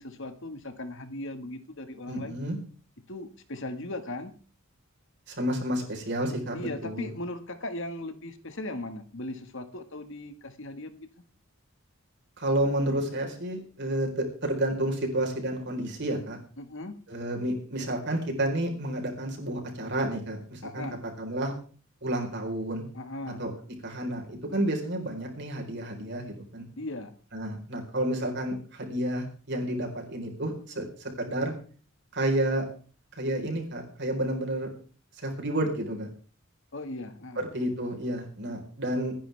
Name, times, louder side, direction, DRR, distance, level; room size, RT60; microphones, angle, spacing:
voice 1, 0.0-2.4 3.1-4.3 6.5-11.1 16.6-16.9 20.6-21.0 23.0-23.4 26.8-27.2 36.7-37.4, left 2 dB, 60° left, 8 dB, 1.8 m, -38 dB
voice 2, 2.1-2.6 5.3-7.1 12.4-16.4 17.1-20.9 21.2-21.5 22.0-22.8 23.4-23.5 23.8-26.7 27.3-31.5 32.1-32.6 33.1-34.7 35.2-36.1 37.4-39.1, right 1 dB, 55° right, 1 dB, 4.2 m, -30 dB
27.0 x 10.0 x 3.4 m, 0.40 s
head